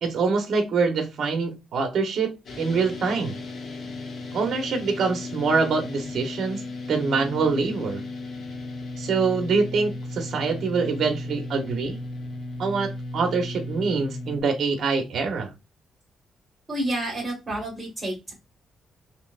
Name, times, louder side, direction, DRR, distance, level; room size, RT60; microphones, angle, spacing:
voice 1, 0.0-2.3 2.6-3.4 4.3-6.6 6.9-8.0 9.0-12.0 12.6-15.5, right 4 dB, 55° right, 1.1 m, -25 dB
sound 1, 2.4-14.4, left 2 dB, 45° left, 0.8 m, -35 dB
voice 2, 16.7-18.3, right 1 dB, 15° right, 1.7 m, -29 dB
5.6 x 2.1 x 2.5 m
cardioid pair, 160°, 0 cm